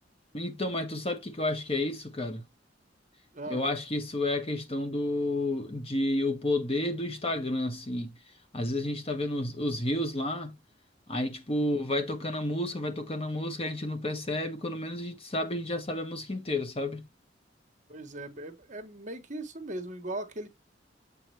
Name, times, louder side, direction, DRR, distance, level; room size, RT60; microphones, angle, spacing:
voice 1, 0.3-2.4 3.5-8.1 8.5-10.6 11.1-17.1, left 1 dB, 35° left, 1.3 m, -31 dB
voice 2, 3.3-3.7 11.6-11.8 17.9-20.5, right 1 dB, 40° right, 1.3 m, -39 dB
7.6 x 4.1 x 3.3 m
head